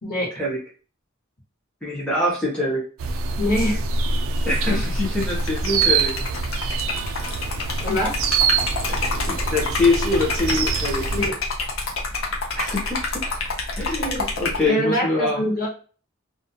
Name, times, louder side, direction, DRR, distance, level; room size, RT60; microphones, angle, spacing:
voice 1, 1.8-2.8 4.4-6.2 8.9-11.1 12.5-13.4 13.8-15.4, left 2 dB, 5° left, -6 dB, 0.7 m, -24 dB
sound 1, 3.0-11.3, right 4 dB, 70° right, 0.3 m, -25 dB
voice 2, 3.4-3.8 7.8-8.2 11.1-11.4 14.7-15.7, left 1 dB, 45° left, -3 dB, 1.2 m, -23 dB
Liquid, 5.1-14.7, left 3 dB, 75° left, 0.7 m, -28 dB
2.3 x 2.1 x 2.7 m, 0.39 s
head